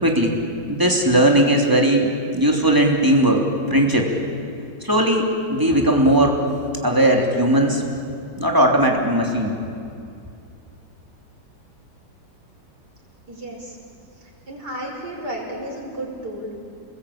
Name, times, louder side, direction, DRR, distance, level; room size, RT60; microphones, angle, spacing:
voice 1, 0.0-0.3 0.7-3.4 3.7-4.1 4.8-6.4 6.8-7.8 8.4-9.5, right 1 dB, 10° right, 0 dB, 3.2 m, -18 dB
voice 2, 13.3-13.8 14.2-16.6, right 1 dB, 65° right, -1 dB, 6.2 m, -33 dB
29.5 x 20.5 x 8.8 m, 2.5 s
omnidirectional pair, 1.9 m